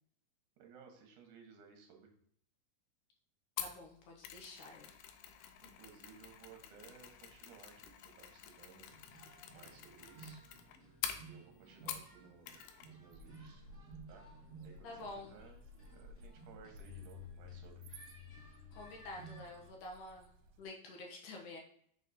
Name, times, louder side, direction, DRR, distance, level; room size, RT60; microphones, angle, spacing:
voice 1, 0.6-2.1 5.6-8.9 9.5-10.4 11.1-13.6 14.1-14.3 14.6-15.6 15.9-17.8, right 6 dB, 65° right, 3 dB, 2.4 m, -59 dB
Mechanisms, 3.6-12.2 12.5-12.9 13.2-13.3, left 10 dB, 90° left, 2.6 m, -47 dB
voice 2, 3.6-4.9 14.8-15.3 18.7-20.3 20.6-21.6, left 2 dB, 70° left, 1 dB, 2.0 m, -49 dB
sound 1, 8.8-19.7, equal, 5° right, 1.0 m, -55 dB
sound 2, 13.1-20.7, left 1 dB, 85° right, 2.5 m, -57 dB
6.2 x 4.0 x 4.2 m, 0.66 s
omnidirectional pair, 4.5 m